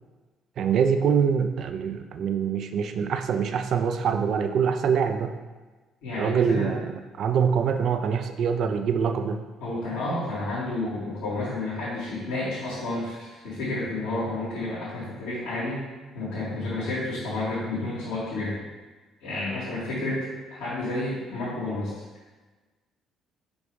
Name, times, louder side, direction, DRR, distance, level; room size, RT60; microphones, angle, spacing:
voice 1, 0.6-5.3 6.2-9.4, right 7 dB, 60° right, 7 dB, 0.6 m, -24 dB
voice 2, 6.0-6.7 9.6-15.8 16.1-18.6 19.2-20.2 20.5-21.9, left 2 dB, 85° left, -12 dB, 2.1 m, -30 dB
5.3 x 5.2 x 4.7 m, 1.3 s
hypercardioid pair, 55°, 0 cm